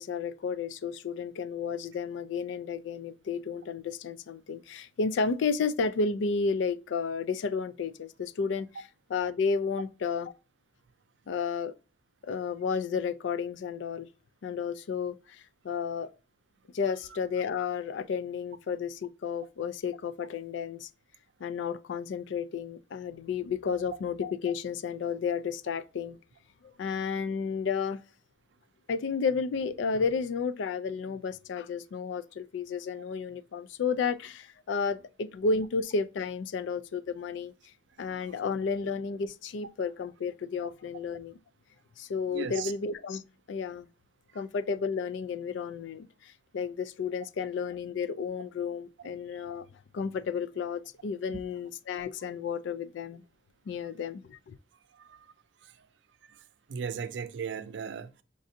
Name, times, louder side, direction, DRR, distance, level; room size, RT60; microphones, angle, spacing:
voice 1, 0.0-10.3 11.3-11.7 12.2-14.1 14.4-16.1 16.7-20.9 21.4-26.2 26.6-28.0 28.9-37.5 38.0-41.4 42.0-43.2 43.5-43.9 44.3-49.7 49.9-53.2 53.7-54.6, left 5 dB, 65° left, 0.3 m, -32 dB
voice 2, 38.0-38.3 42.3-42.7 44.3-44.4 51.3-51.4 54.9-55.3 55.6-55.9 56.3-56.4 56.7-58.2, right 6 dB, 60° right, 0.4 m, -38 dB
5.2 x 2.5 x 2.6 m
head